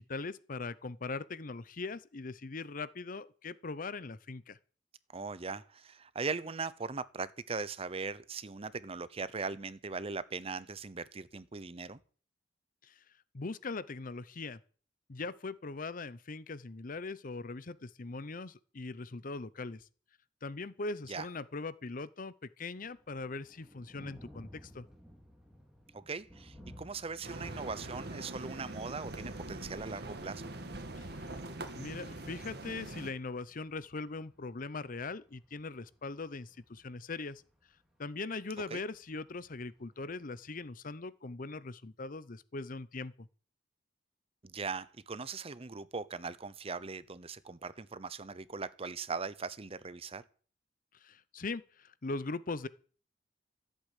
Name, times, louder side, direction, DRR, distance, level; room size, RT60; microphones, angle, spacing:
voice 1, 0.0-4.6 12.8-12.9 13.3-14.6 15.1-19.8 20.4-24.9 31.0-31.3 31.7-37.4 38.0-43.3 51.0-52.7, left 3 dB, 50° left, 0.7 m, -41 dB
voice 2, 5.1-12.0 21.1-21.3 25.9-30.4 38.7-38.8 44.4-50.2, right 4 dB, 35° right, 0.7 m, -40 dB
Thunder, 22.8-40.7, equal, 5° right, 3.9 m, -58 dB
sound 1, 27.2-33.1, right 2 dB, 60° right, 1.9 m, -43 dB
14.0 x 8.3 x 8.2 m
head